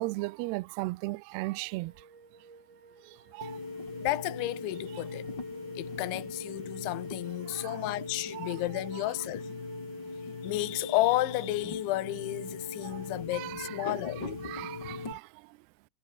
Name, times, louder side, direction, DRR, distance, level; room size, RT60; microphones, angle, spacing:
voice 1, 0.0-1.9 3.3-3.6 7.5-7.8 8.3-8.6 8.9-9.0 13.3-15.2, right 22 dB, 85° right, 2.3 m, -36 dB
sound 1, 1.5-13.2, right 4 dB, 55° right, 8.9 m, -56 dB
sound 2, 3.4-15.1, left 3 dB, 25° left, 4.7 m, -40 dB
voice 2, 4.0-5.2 5.8-9.5 10.4-14.3 14.8-14.9, left 17 dB, 85° left, 3.3 m, -32 dB
omnidirectional pair, 5.4 m